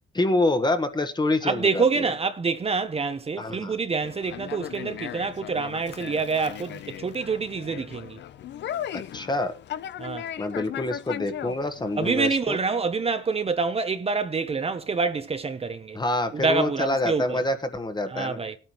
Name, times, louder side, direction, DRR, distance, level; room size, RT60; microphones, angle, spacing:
voice 1, 0.1-1.8 3.4-3.7 8.9-9.5 10.4-12.6 15.9-18.4, left 2 dB, 20° left, 1.3 m, -26 dB
voice 2, 1.4-8.2 10.0-10.3 12.0-16.0 16.3-17.4 18.1-18.6, right 4 dB, 30° right, 0.8 m, -26 dB
Conversation, 4.0-12.4, left 10 dB, 65° left, 0.6 m, -37 dB
19.5 x 9.0 x 3.0 m
cardioid pair, 90°, 20 cm